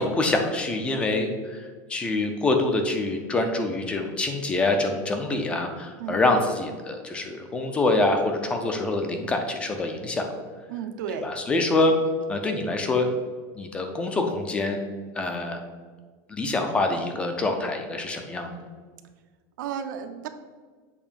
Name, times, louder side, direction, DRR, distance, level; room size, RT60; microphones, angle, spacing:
voice 1, 0.0-10.3 11.2-12.0 12.3-13.1 13.6-14.8 15.1-15.6 16.3-18.5, left 2 dB, 10° left, 5 dB, 0.4 m, -25 dB
voice 2, 10.7-11.3 19.6-20.3, right 8 dB, 75° right, 8 dB, 0.6 m, -33 dB
7.1 x 2.7 x 5.1 m, 1.5 s
supercardioid pair, 175°, 10 cm